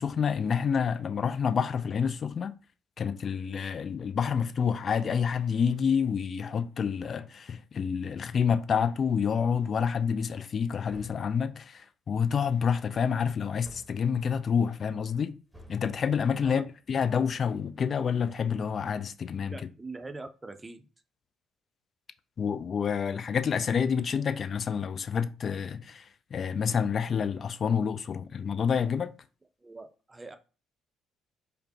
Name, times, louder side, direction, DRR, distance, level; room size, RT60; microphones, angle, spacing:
voice 1, 0.0-2.6 3.0-15.4 15.7-19.6 22.4-26.1 26.3-29.1, left 7 dB, 45° left, 0.3 m, -28 dB
sound 1, 10.9-11.4 13.6-14.1 15.5-15.9, equal, 5° left, 1.0 m, -52 dB
voice 2, 19.5-20.9 29.6-30.4, right 3 dB, 20° right, 0.5 m, -43 dB
4.9 x 2.0 x 2.7 m
figure-of-eight pair, 50°, 0 cm